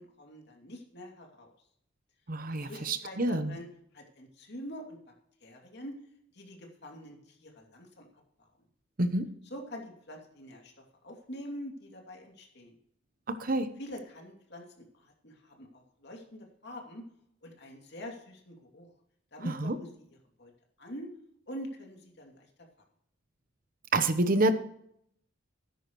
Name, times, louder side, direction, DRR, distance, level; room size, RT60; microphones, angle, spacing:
voice 1, 0.0-1.5 2.5-3.7 3.9-5.0 5.4-6.0 6.3-8.1 9.4-10.7 11.0-12.7 13.8-17.1 17.4-18.9 19.3-19.9 20.4-20.5 20.8-21.1 21.5-22.5, equal, 60° left, 2 dB, 2.7 m, -45 dB
voice 2, 2.3-3.6 9.0-9.3 13.3-13.7 19.5-19.8 23.9-24.5, right 2 dB, 45° right, 11 dB, 0.9 m, -28 dB
13.5 x 10.5 x 3.1 m, 0.71 s
head